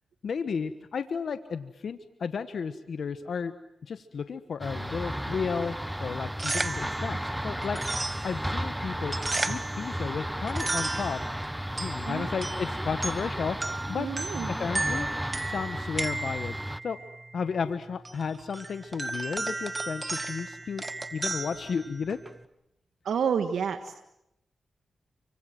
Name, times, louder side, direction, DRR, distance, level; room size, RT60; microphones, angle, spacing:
voice 1, 0.2-3.5 3.8-5.7 6.0-7.8 8.2-9.2 9.5-11.2 11.7-14.1 14.6-15.1 15.4-16.6 16.8-17.0 17.3-20.8 21.1-22.2, left 6 dB, 75° left, 10 dB, 1.4 m, -33 dB
sound 1, 4.6-16.8, equal, 5° right, 1.0 m, -34 dB
sound 2, 6.2-22.4, right 2 dB, 30° right, 2.3 m, -35 dB
voice 2, 13.9-14.5 23.0-24.0, right 7 dB, 85° right, 7 dB, 1.6 m, -29 dB
29.5 x 25.0 x 7.8 m, 0.83 s
cardioid pair, 55°, 0 cm